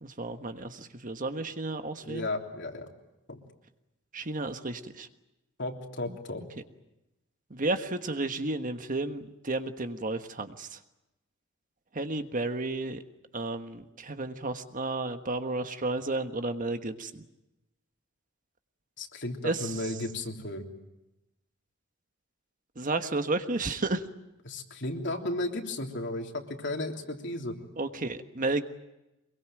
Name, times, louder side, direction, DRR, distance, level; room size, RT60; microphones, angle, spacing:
voice 1, 0.0-2.3 4.1-5.1 6.1-6.2 7.5-10.8 11.9-13.0 13.3-17.2 19.4-19.8 22.8-24.0 27.8-28.6, right 2 dB, 45° right, 8 dB, 1.4 m, -32 dB
voice 2, 2.0-2.9 3.3-3.4 5.6-6.4 19.0-20.7 24.5-27.6, left 2 dB, 60° left, 3 dB, 3.4 m, -34 dB
24.5 x 22.5 x 9.0 m, 0.95 s
head